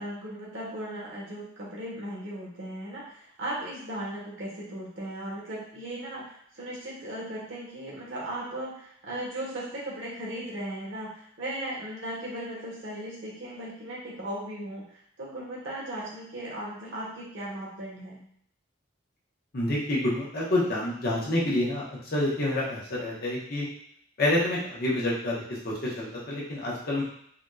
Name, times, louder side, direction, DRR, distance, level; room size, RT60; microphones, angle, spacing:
voice 1, 0.0-14.8 15.2-18.2, right 1 dB, 70° right, -5 dB, 1.2 m, -37 dB
voice 2, 19.5-21.8 22.1-23.7 24.2-25.4 26.0-27.0, left 1 dB, 55° left, -5 dB, 0.9 m, -27 dB
3.6 x 2.6 x 2.3 m, 0.66 s
head